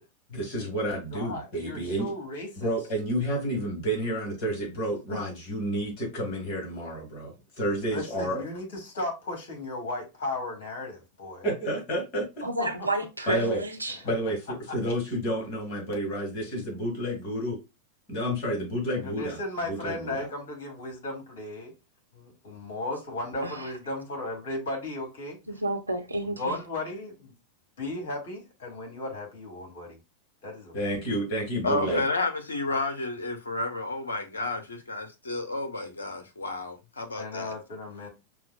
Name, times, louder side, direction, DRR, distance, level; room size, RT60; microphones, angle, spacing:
voice 1, 0.3-2.1 2.6-8.4 11.4-12.4 13.3-13.6 14.0-17.6 18.1-20.3 30.7-32.0, right 1 dB, 40° left, 1.9 m, -30 dB
voice 2, 1.1-2.7 5.1-5.2 7.9-11.5 12.6-12.7 13.9-14.0 18.9-21.7 22.1-25.6 26.2-27.3 27.8-30.0 30.4-30.8 37.1-38.1, left 2 dB, 55° left, 1.7 m, -35 dB
voice 3, 12.4-14.0 23.4-23.7 25.5-26.5, right 2 dB, 85° right, 0.6 m, -30 dB
voice 4, 31.6-37.5, left 2 dB, 75° left, 0.7 m, -31 dB
5.7 x 2.4 x 2.3 m
figure-of-eight pair, 90°, 0 cm